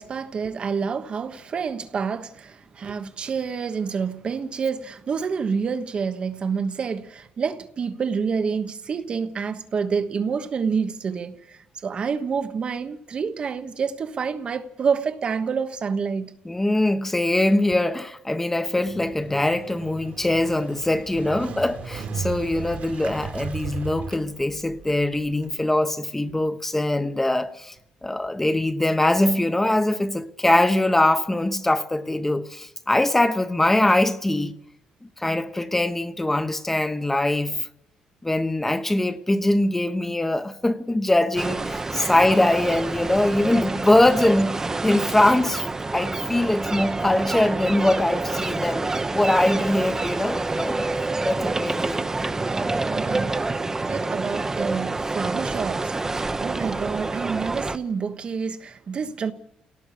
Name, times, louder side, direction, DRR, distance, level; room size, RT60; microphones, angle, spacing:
voice 1, 0.0-16.3 41.9-42.1 51.4-51.5 52.4-53.4 53.8-59.3, right 6 dB, 45° right, 1.3 m, -28 dB
voice 2, 16.4-27.7 28.0-34.5 35.2-37.7 38.2-45.6 45.9-48.9 49.1-50.9 51.2-52.3, left 1 dB, 10° left, 1.2 m, -22 dB
Motorcycle, 18.8-25.5, right 6 dB, 70° right, 2.6 m, -36 dB
sound 1, 41.4-57.8, right 3 dB, 20° right, 1.0 m, -27 dB
28.5 x 18.0 x 6.8 m
cardioid pair, 100°, 2 cm